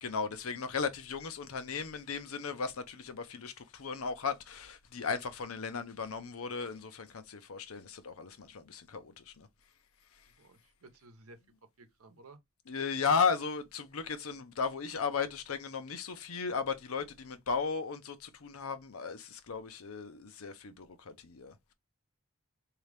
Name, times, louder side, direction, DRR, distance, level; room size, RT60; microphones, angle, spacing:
voice 1, 0.0-9.5 10.1-10.3 12.7-21.6, left 5 dB, 75° left, 0.7 m, -35 dB
voice 2, 10.4-11.4 11.8-12.4, right 2 dB, 85° right, 0.9 m, -55 dB
3.7 x 2.8 x 3.3 m
head